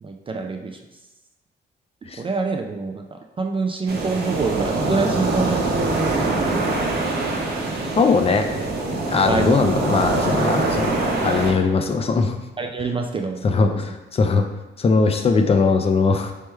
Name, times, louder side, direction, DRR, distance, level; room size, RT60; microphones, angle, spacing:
voice 1, 0.0-0.8 2.2-3.0 3.4-6.5 9.2-9.6 12.6-13.8, right 4 dB, 25° right, 3 dB, 0.4 m, -26 dB
sound 1, 3.9-11.5, right 2 dB, 55° right, 0.9 m, -24 dB
voice 2, 8.0-8.5 9.1-12.4 13.4-14.5 14.8-16.3, left 4 dB, 30° left, 6 dB, 0.5 m, -20 dB
3.4 x 3.2 x 4.4 m, 1.1 s
cardioid pair, 90°, 20 cm